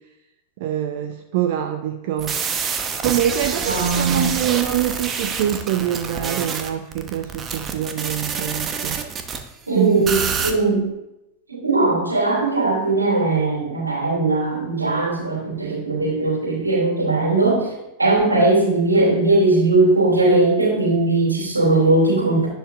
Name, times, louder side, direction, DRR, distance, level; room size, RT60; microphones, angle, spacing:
voice 1, 0.6-2.4 3.0-9.0 9.7-10.1 18.6-18.7, right 11 dB, 50° right, 7 dB, 0.6 m, -24 dB
sound 1, 2.2-9.4 10.1-10.5, right 6 dB, 25° right, 1.1 m, -27 dB
voice 2, 3.7-4.3 9.7-10.9 11.5-17.7 18.0-22.5, right 2 dB, 80° right, -1 dB, 2.8 m, -19 dB
11.0 x 10.5 x 2.6 m, 0.92 s
figure-of-eight pair, 90°, 0 cm